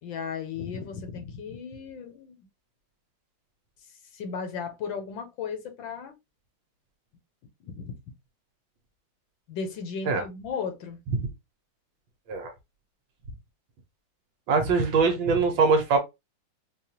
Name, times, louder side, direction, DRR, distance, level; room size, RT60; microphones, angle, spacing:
voice 1, 0.0-2.5 4.1-6.1 7.6-7.9 9.5-11.0, left 6 dB, 70° left, 1.5 m, -35 dB
voice 2, 14.5-16.0, right 4 dB, 70° right, 1.6 m, -22 dB
4.7 x 2.4 x 2.8 m
omnidirectional pair, 2.3 m